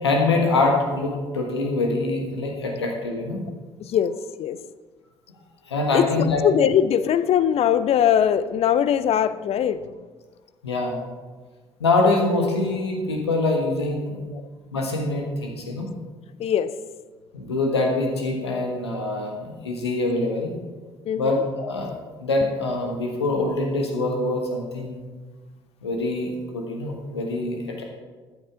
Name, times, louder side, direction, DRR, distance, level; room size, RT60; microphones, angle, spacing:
voice 1, 0.0-3.4 5.6-6.4 10.6-11.0 11.8-14.3 14.7-15.9 17.3-20.5 21.2-21.9 22.2-25.0 25.8-27.8, left 2 dB, 85° left, 1 dB, 1.4 m, -24 dB
voice 2, 3.8-4.6 5.9-9.8 16.4-16.7 21.1-21.4, left 9 dB, 50° left, 14 dB, 0.5 m, -21 dB
13.5 x 8.1 x 3.7 m, 1.4 s
figure-of-eight pair, 50°, 14 cm